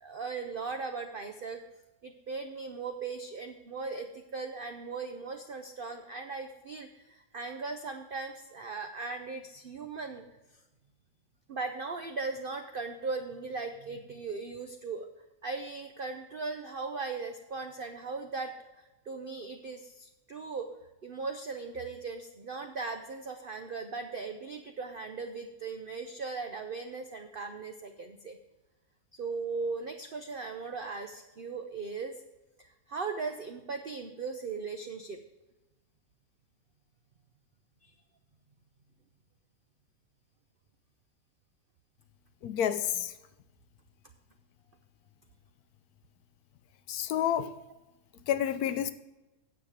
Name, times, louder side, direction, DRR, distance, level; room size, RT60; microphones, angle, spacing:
voice 1, 0.0-1.6 2.0-10.2 11.5-15.1 15.4-20.7 21.0-28.4 29.1-32.1 32.6-35.2 37.8-37.9, right 4 dB, 70° right, 0.5 m, -38 dB
voice 2, 42.4-43.1 46.9-47.5 48.3-48.9, left 10 dB, 70° left, 1.0 m, -29 dB
9.4 x 7.0 x 5.0 m
omnidirectional pair, 1.8 m